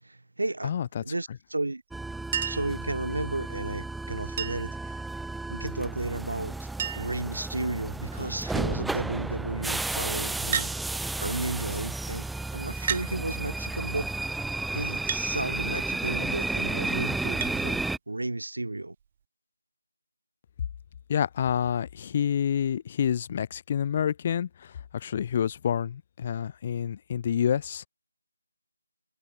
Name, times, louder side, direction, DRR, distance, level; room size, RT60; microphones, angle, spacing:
voice 1, 0.0-0.7 1.0-1.8 2.4-5.0 5.5-6.7 7.0-10.7 11.2-12.3 12.5-14.4 14.7-19.0, right 2 dB, 65° right, 4.2 m, -33 dB
voice 2, 0.6-1.0 21.1-27.9, left 8 dB, 25° left, 5.2 m, -28 dB
sound 1, 1.9-18.0, right 2 dB, ahead, 1.6 m, -32 dB
Chink clink, 2.3-2.8 4.4-4.8 6.2-6.3 6.5-6.6 6.8-7.2 8.0-8.4 10.5-10.8 11.8-11.9 12.9-13.1 15.1-15.3 17.4-17.6 19.0-19.1, right 8 dB, 25° right, 0.8 m, -31 dB
figure-of-eight pair, 160°, 0 cm